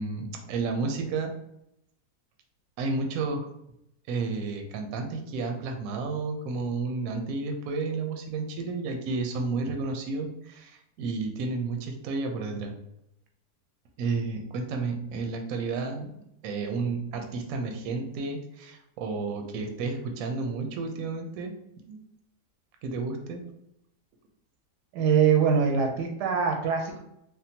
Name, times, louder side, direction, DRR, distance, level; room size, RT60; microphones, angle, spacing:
voice 1, 0.0-1.3 2.8-3.5 4.1-12.7 14.0-16.1 16.4-21.5 21.8-22.0 22.8-23.4, right 3 dB, 70° right, 4 dB, 0.9 m, -31 dB
voice 2, 24.9-27.0, right 6 dB, 90° right, 2 dB, 1.3 m, -23 dB
3.6 x 2.1 x 2.7 m, 0.78 s
omnidirectional pair, 1.8 m